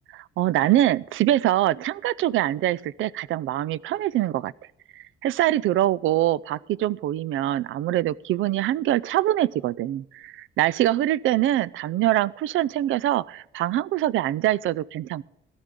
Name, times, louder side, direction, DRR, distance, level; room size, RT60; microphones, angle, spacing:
voice 1, 0.4-4.5 5.2-15.2, right 13 dB, 75° right, 22 dB, 0.4 m, -24 dB
17.5 x 12.5 x 3.7 m, 0.83 s
cardioid pair, 90°, 21 cm